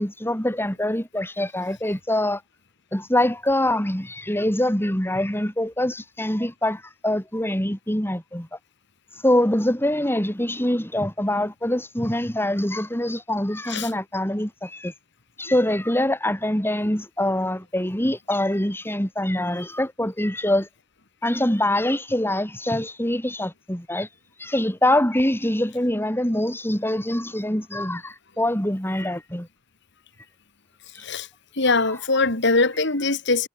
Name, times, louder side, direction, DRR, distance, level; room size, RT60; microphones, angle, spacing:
voice 1, 0.0-2.4 2.9-8.5 9.2-14.9 15.4-20.7 21.2-24.1 24.4-29.5, left 1 dB, 10° left, 4.5 m, -24 dB
voice 2, 31.5-33.5, left 3 dB, 60° left, 3.2 m, -22 dB
head